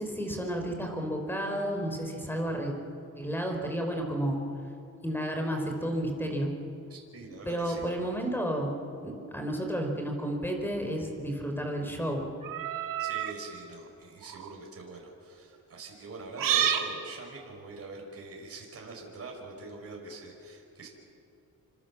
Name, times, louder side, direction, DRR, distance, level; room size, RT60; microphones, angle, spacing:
voice 1, 0.0-2.7 3.2-4.4 5.0-6.5 7.4-8.7 9.0-12.3, right 1 dB, 5° left, 3 dB, 4.7 m, -31 dB
voice 2, 6.9-7.9 13.0-20.9, right 3 dB, 45° right, -1 dB, 6.0 m, -44 dB
sound 1, 12.4-13.4 14.2-14.5 16.4-16.9, right 9 dB, 90° right, 1.9 m, -28 dB
29.0 x 26.0 x 7.4 m, 2.7 s
cardioid pair, 110°, 33 cm